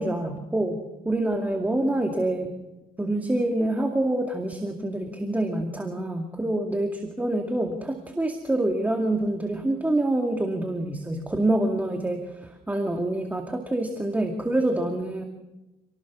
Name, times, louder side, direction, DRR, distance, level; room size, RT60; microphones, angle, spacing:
voice 1, 0.0-2.5 3.0-15.2, right 1 dB, 10° right, 3 dB, 2.2 m, -26 dB
28.0 x 19.5 x 6.2 m, 1.0 s
cardioid pair, 110°, 17 cm